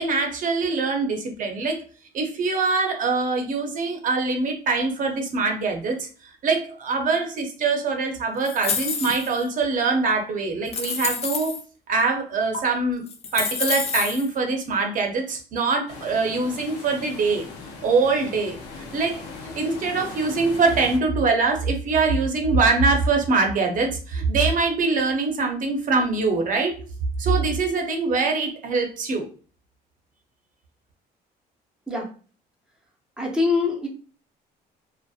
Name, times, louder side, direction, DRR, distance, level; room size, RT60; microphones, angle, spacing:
voice 1, 0.0-1.8 2.1-6.1 6.4-11.6 11.9-13.0 13.3-17.5 17.8-18.6 18.9-19.2 19.5-26.8 27.2-29.2, right 4 dB, 50° right, 3 dB, 0.6 m, -23 dB
sound 1, 8.4-9.4 10.1-10.2 10.7-11.6 12.5-12.6 13.1-14.3, left 5 dB, 40° left, 0.4 m, -28 dB
sound 2, 15.9-21.0, left 4 dB, 85° left, 0.5 m, -39 dB
voice 2, 33.2-33.9, left 3 dB, 5° right, -1 dB, 0.6 m, -23 dB
2.6 x 2.0 x 2.3 m, 0.38 s
cardioid pair, 110°, 17 cm